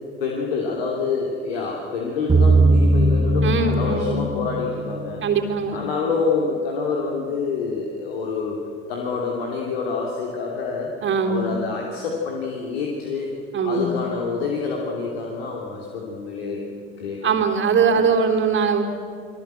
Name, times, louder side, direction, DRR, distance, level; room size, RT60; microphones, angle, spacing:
voice 1, 0.2-5.2 5.7-8.6 8.9-10.9 11.3-13.3 13.6-16.7 17.0-17.4 17.9-18.1, left 4 dB, 70° left, -1 dB, 3.2 m, -27 dB
sound 1, 2.3-6.0, right 2 dB, 15° right, 2.1 m, -20 dB
voice 2, 3.4-4.3 5.2-5.8 11.0-11.5 13.5-14.0 17.2-18.8, right 5 dB, 40° right, 2 dB, 3.5 m, -21 dB
30.0 x 23.0 x 7.8 m, 2.5 s
figure-of-eight pair, 60°, 31 cm